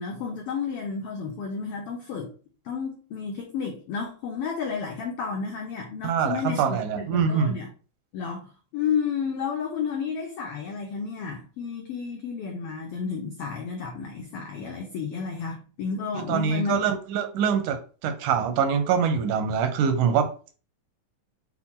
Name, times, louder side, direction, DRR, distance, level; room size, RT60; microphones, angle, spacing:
voice 1, 0.0-2.3 2.6-7.7 8.1-16.8, left 6 dB, 85° left, 1.3 m, -31 dB
voice 2, 6.0-7.6 16.1-20.3, right 7 dB, 85° right, 2.2 m, -24 dB
5.8 x 2.2 x 3.6 m
omnidirectional pair, 3.4 m